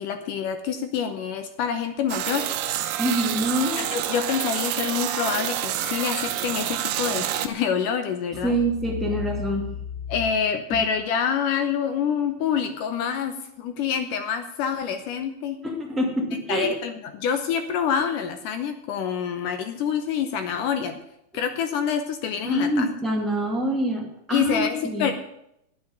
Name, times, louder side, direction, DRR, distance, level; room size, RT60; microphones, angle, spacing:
voice 1, 0.0-2.5 3.7-8.6 10.1-15.6 16.5-21.0 21.3-22.9 24.3-25.1, left 7 dB, 75° left, 8 dB, 2.0 m, -27 dB
sound 1, 2.1-7.5, right 11 dB, 85° right, 2.7 m, -28 dB
voice 2, 3.0-3.8 8.4-9.7 10.7-10.8 15.6-16.7 22.4-25.1, equal, ahead, -2 dB, 0.9 m, -25 dB
9.7 x 7.7 x 9.0 m, 0.79 s
omnidirectional pair, 4.5 m